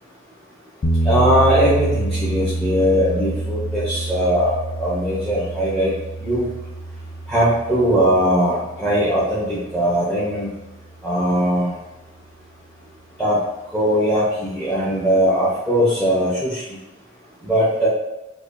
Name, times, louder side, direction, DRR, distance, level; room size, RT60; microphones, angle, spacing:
sound 1, 0.8-10.9, right 2 dB, 40° left, 0.4 m, -27 dB
voice 1, 1.0-6.5 7.3-10.5 11.0-11.7 13.2-13.4 13.7-16.6 17.4-17.9, equal, 5° left, -8 dB, 0.7 m, -20 dB
4.9 x 2.3 x 2.6 m, 0.98 s
head